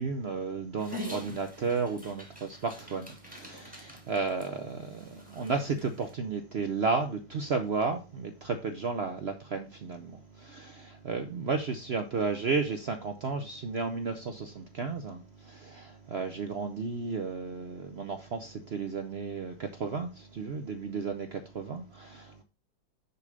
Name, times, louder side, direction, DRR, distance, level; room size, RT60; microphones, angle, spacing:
voice 1, 0.0-22.4, right 4 dB, 65° right, 0.6 m, -33 dB
Dog, 0.8-6.1, left 1 dB, 5° right, 2.0 m, -45 dB
6.8 x 5.3 x 5.0 m
omnidirectional pair, 2.0 m